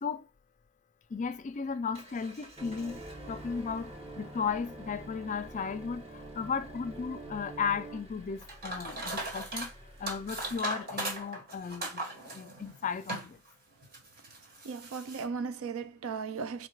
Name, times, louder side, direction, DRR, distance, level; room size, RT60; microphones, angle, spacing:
voice 1, 1.1-9.7 10.0-13.4, left 6 dB, 35° left, 0.3 m, -35 dB
Engine, 1.1-10.6, equal, 30° right, 1.1 m, -53 dB
sound 1, 2.6-8.0, right 2 dB, 10° right, 0.7 m, -46 dB
sound 2, 8.4-9.7 10.1-13.4 13.8-15.2, right 2 dB, 45° right, 1.4 m, -38 dB
voice 2, 14.6-16.7, right 5 dB, 65° right, 0.4 m, -36 dB
4.0 x 2.3 x 4.5 m
head